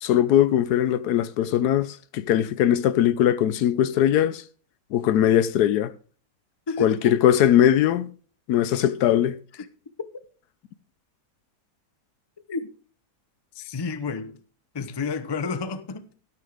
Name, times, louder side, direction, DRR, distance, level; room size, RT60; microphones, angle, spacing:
voice 1, 0.0-4.4 4.9-5.9 6.8-8.1 8.5-9.4, left 11 dB, 80° left, 1.2 m, -20 dB
voice 2, 6.7-7.2 9.5-9.7 12.5-12.7 13.5-14.4 14.7-16.1, left 4 dB, 35° left, 0.4 m, -30 dB
12.5 x 10.5 x 3.5 m
omnidirectional pair, 1.7 m